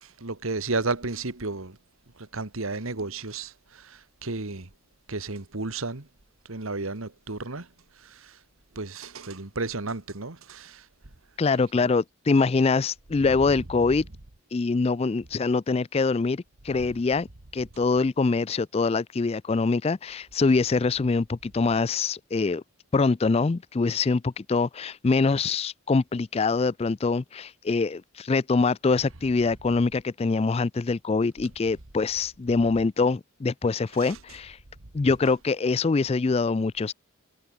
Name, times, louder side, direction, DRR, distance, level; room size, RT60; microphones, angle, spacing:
voice 1, 0.0-1.8 2.2-4.7 5.1-6.1 6.5-7.7 8.0-8.4 8.8-10.9 11.7-11.8 34.0-34.2, right 3 dB, 80° right, 1.9 m, -33 dB
voice 2, 11.4-14.1 14.5-17.3 17.5-22.6 22.9-34.6 34.9-36.9, left 4 dB, 30° left, 0.4 m, -24 dB
head